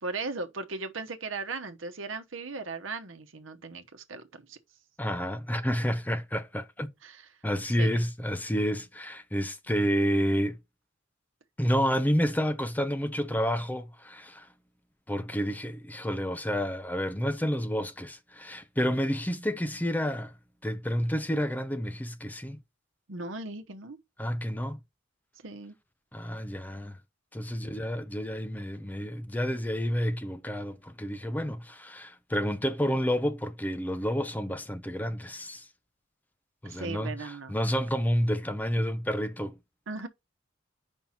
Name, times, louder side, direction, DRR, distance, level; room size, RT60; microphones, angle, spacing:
voice 1, 0.0-4.6 7.0-7.3 7.8-8.0 23.1-24.0 25.4-25.7 36.6-37.5 39.9-40.1, right 3 dB, 75° right, 1.0 m, -37 dB
voice 2, 5.0-6.9 7.4-10.6 11.6-14.5 15.1-20.3 20.6-22.6 24.2-24.8 26.1-27.0 27.3-35.7 36.6-39.6, equal, 10° left, 0.6 m, -29 dB
5.4 x 4.3 x 5.6 m
head